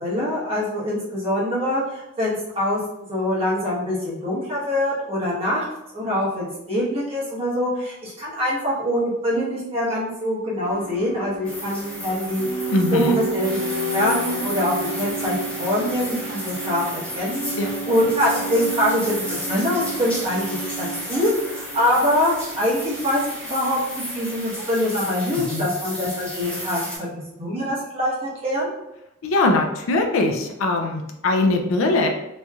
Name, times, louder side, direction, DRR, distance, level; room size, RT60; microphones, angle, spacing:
voice 1, 0.0-5.6 5.9-13.6 13.9-17.4 17.8-27.1 27.4-28.7, left 1 dB, 25° right, -7 dB, 1.1 m, -24 dB
sound 1, 10.6-24.7 24.9-25.0, right 2 dB, 45° left, 1.2 m, -32 dB
sound 2, 11.4-27.0, equal, 5° left, 1.0 m, -33 dB
voice 2, 12.7-13.2 17.6-17.7 25.4-25.7 29.2-32.1, left 2 dB, 70° left, 3 dB, 0.4 m, -21 dB
3.0 x 2.7 x 2.3 m, 0.89 s
head